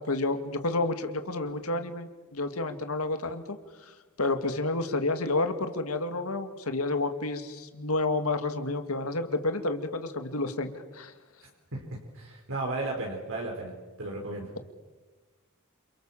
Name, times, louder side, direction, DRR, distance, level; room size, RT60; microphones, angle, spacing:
voice 1, 0.1-3.6 3.8-3.9 4.2-11.1, left 2 dB, 75° left, 7 dB, 2.3 m, -30 dB
voice 2, 11.7-13.7 14.0-14.5, right 2 dB, 65° right, -1 dB, 4.8 m, -34 dB
29.0 x 28.0 x 7.4 m, 1.2 s
head